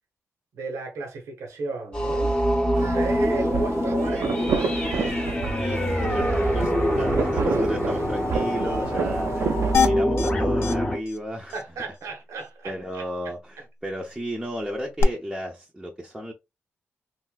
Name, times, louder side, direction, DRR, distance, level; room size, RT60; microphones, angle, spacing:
voice 1, 0.5-2.3 2.8-4.7 11.5-13.1, right 3 dB, 90° right, 1.0 m, -33 dB
sound 1, 1.9-11.0, equal, 20° left, 0.8 m, -25 dB
sound 2, 2.7-9.9, right 5 dB, 70° right, 0.5 m, -30 dB
voice 2, 5.5-11.6 12.6-16.3, equal, 10° right, 0.6 m, -33 dB
sound 3, 9.7-10.3 10.6-10.7 11.1-11.2 11.5-11.6 15.0-15.1, left 6 dB, 60° left, 0.5 m, -23 dB
3.2 x 2.6 x 2.3 m
cardioid pair, 95°, 5 cm